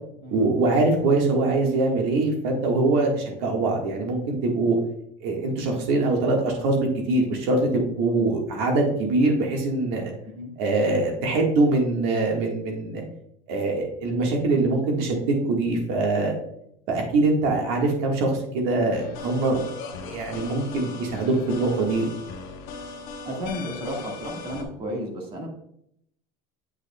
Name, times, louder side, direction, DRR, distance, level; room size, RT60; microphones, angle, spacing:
voice 1, 0.3-4.8 5.2-10.1 10.6-13.0 13.5-16.3 16.9-19.6 20.1-22.1, right 2 dB, 65° right, 1 dB, 1.6 m, -23 dB
sound 1, 18.9-24.6, left 4 dB, 60° left, 1.3 m, -38 dB
voice 2, 23.2-25.5, equal, 30° right, 0 dB, 1.6 m, -33 dB
7.9 x 6.8 x 2.3 m, 0.72 s
cardioid pair, 145°, 17 cm